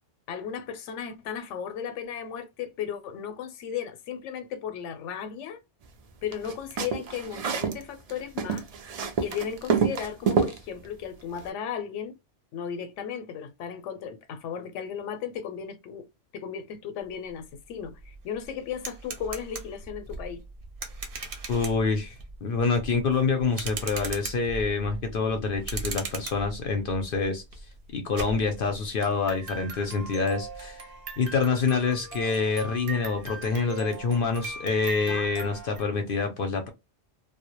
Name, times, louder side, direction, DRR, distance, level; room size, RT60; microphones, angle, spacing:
voice 1, 0.3-5.6 6.2-8.7 9.2-12.1 12.5-16.1 16.3-20.4 35.1-35.3, left 8 dB, 90° left, 0.9 m, -35 dB
sound 1, 6.3-7.8 8.1-10.6, right 6 dB, 75° right, 0.3 m, -27 dB
sound 2, 17.4-17.5 17.8-35.8, right 4 dB, 60° right, 0.7 m, -39 dB
voice 2, 21.5-22.2 22.4-27.4 27.9-30.9 31.2-36.7, left 4 dB, 60° left, 0.6 m, -26 dB
2.1 x 2.0 x 2.8 m
omnidirectional pair, 1.2 m